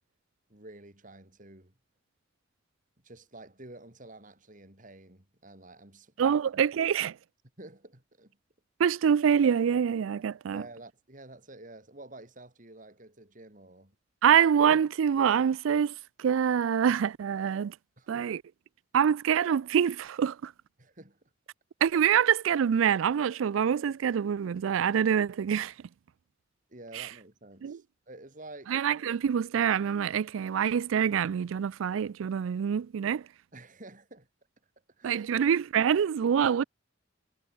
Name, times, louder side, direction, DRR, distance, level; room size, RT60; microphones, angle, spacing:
voice 1, 0.5-1.7 3.0-6.4 7.6-8.4 10.5-14.0 18.0-18.3 20.8-21.2 26.7-28.8 33.5-34.3 35.0-35.2, right 2 dB, 40° right, 4.1 m, -49 dB
voice 2, 6.2-7.2 8.8-10.6 14.2-17.7 18.1-18.4 18.9-20.5 21.8-25.7 26.9-27.1 27.6-27.8 28.7-33.2 35.0-36.6, right 8 dB, 80° right, 0.4 m, -25 dB
head